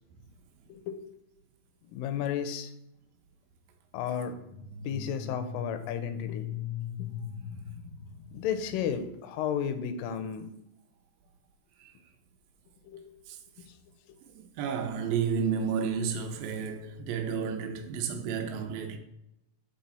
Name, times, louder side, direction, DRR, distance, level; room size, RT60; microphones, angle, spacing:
voice 1, 1.9-2.7 3.9-4.4 4.8-6.5 7.0-7.1 8.3-10.5 12.9-13.1 13.6-13.7, left 8 dB, 85° left, 2.2 m, -33 dB
sound 1, 4.3-9.0, left 8 dB, 70° right, 1.5 m, -39 dB
voice 2, 13.3-13.7 14.2-19.0, right 6 dB, 85° right, 2.3 m, -32 dB
6.2 x 3.9 x 4.1 m
omnidirectional pair, 3.9 m